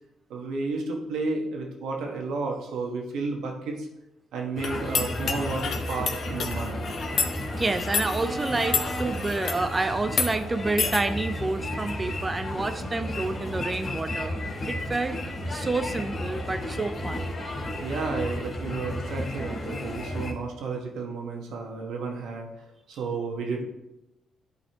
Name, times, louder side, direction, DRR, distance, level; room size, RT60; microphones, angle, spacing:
voice 1, 0.3-3.9 4.3-6.8 17.8-22.5 22.9-23.6, right 3 dB, 80° right, 1 dB, 1.3 m, -32 dB
sound 1, 4.6-9.7 10.1-10.3 10.8-11.0, left 5 dB, 60° left, 0.8 m, -30 dB
sound 2, 4.6-20.3, left 1 dB, 40° left, 2.3 m, -33 dB
voice 2, 7.6-14.3 14.7-15.2 15.5-17.3, right 3 dB, 25° right, 9 dB, 0.6 m, -29 dB
11.5 x 4.1 x 2.9 m, 0.92 s
cardioid pair, 90°, 0 cm